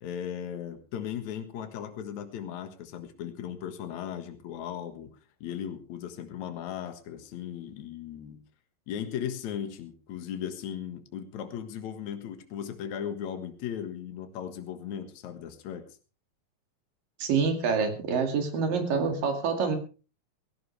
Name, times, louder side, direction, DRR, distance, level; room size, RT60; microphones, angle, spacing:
voice 1, 0.0-8.4 8.9-15.9, left 9 dB, 60° left, 8 dB, 2.7 m, -37 dB
voice 2, 17.2-19.8, right 5 dB, 80° right, 5 dB, 3.9 m, -26 dB
17.0 x 17.0 x 3.3 m, 0.36 s
omnidirectional pair, 3.9 m